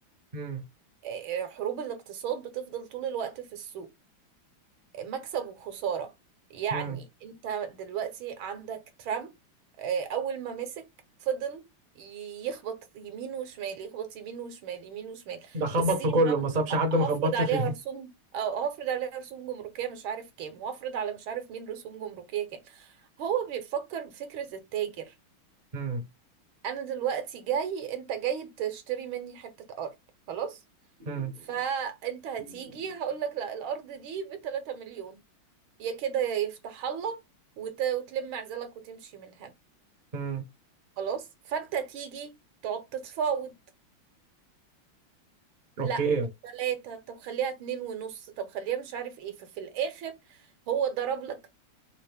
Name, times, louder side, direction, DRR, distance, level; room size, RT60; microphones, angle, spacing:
voice 1, 0.3-0.6 6.7-7.0 15.5-17.7 25.7-26.0 31.0-31.4 32.5-32.6 40.1-40.4 45.8-46.3, right 2 dB, 35° right, 0.8 m, -27 dB
voice 2, 1.0-3.9 4.9-6.1 6.5-9.3 9.8-10.8 11.2-11.7 11.9-15.6 16.1-16.3 16.7-25.1 26.6-29.9 30.3-30.6 31.4-35.2 35.8-37.2 37.6-39.5 41.0-42.3 42.6-43.5 45.8-46.0 46.4-50.4 50.7-51.5, right 8 dB, 75° right, 1.7 m, -33 dB
4.3 x 2.6 x 3.4 m
omnidirectional pair, 2.3 m